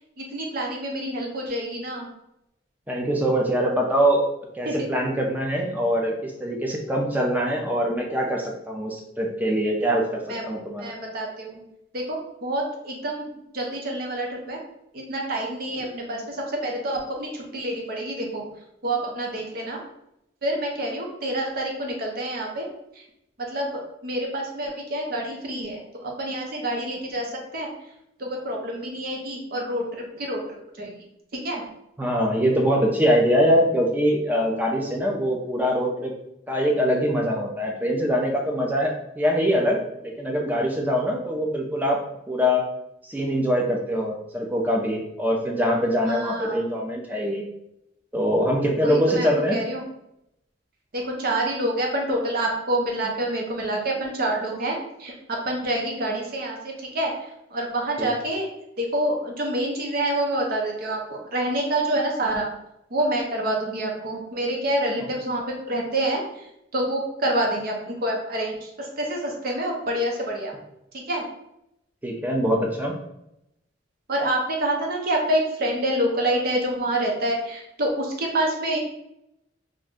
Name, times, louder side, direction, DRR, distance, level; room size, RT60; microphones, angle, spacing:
voice 1, 0.2-2.1 4.7-4.8 10.3-10.4 10.8-11.5 11.9-13.2 13.5-14.6 14.9-18.5 18.8-19.8 20.4-22.7 23.5-25.8 26.2-27.7 28.2-30.4 30.8-30.9 31.4-31.6 46.1-46.6 48.8-49.8 50.9-57.1 57.5-58.5 58.8-62.5 62.9-66.2 66.7-70.5 70.9-71.2 74.1-78.8, right 1 dB, 55° right, 0 dB, 0.6 m, -27 dB
voice 2, 2.9-4.2 4.5-10.2 10.5-10.9 32.0-36.1 36.5-39.8 40.0-42.6 43.1-47.4 48.1-49.6 58.0-58.1 65.0-65.1 72.0-72.9, equal, 10° right, 0 dB, 0.5 m, -23 dB
2.5 x 2.1 x 3.6 m, 0.82 s
head